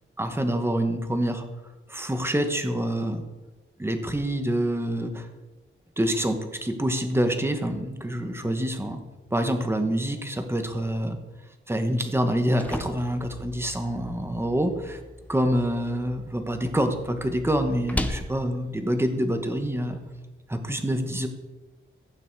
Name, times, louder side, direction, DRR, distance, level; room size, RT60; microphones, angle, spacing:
voice 1, 0.2-1.4 1.9-3.2 3.8-5.3 6.0-9.0 9.3-11.2 11.7-15.0 15.3-20.0 20.5-21.3, equal, 10° right, 6 dB, 1.1 m, -26 dB
sound 1, 12.2-20.1, left 1 dB, 5° left, 0.8 m, -38 dB
15.0 x 9.0 x 4.6 m, 1.2 s
wide cardioid pair, 180°, 21 cm